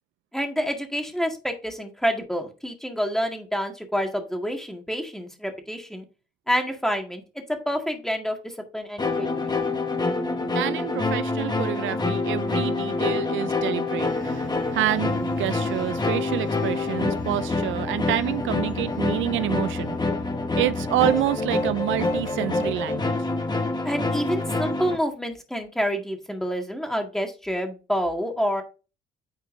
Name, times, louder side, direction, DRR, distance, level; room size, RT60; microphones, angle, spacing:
voice 1, 0.3-6.1 6.5-7.2 7.5-9.7 23.8-28.6, equal, ahead, 1.9 m, -28 dB
sound 1, 9.0-25.0, left 3 dB, 20° left, 1.3 m, -26 dB
voice 2, 10.5-20.0 20.5-23.1, right 14 dB, 75° right, 0.4 m, -28 dB
sound 2, 14.0-20.4, left 3 dB, 45° left, 2.1 m, -42 dB
9.6 x 4.4 x 2.6 m
cardioid pair, 90°, 20 cm